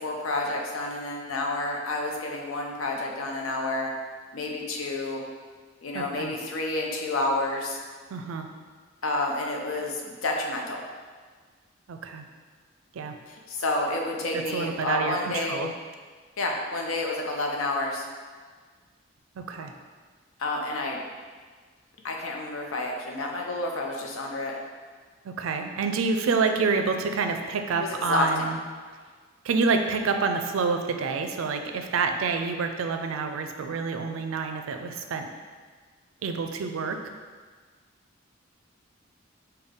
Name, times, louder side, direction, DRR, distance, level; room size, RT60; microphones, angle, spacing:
voice 1, 0.0-3.9 4.3-5.2 5.8-7.8 9.0-10.8 13.3-15.6 16.4-18.1 20.4-21.0 22.0-24.6 27.8-28.5, left 2 dB, 85° left, 0 dB, 0.6 m, -29 dB
voice 2, 5.9-6.3 8.1-8.5 11.9-12.2 12.9-13.2 14.3-15.7 19.4-19.7 25.2-28.6 29.4-35.3 36.2-37.0, right 4 dB, 80° right, 6 dB, 0.4 m, -28 dB
5.4 x 2.2 x 3.5 m, 1.5 s
head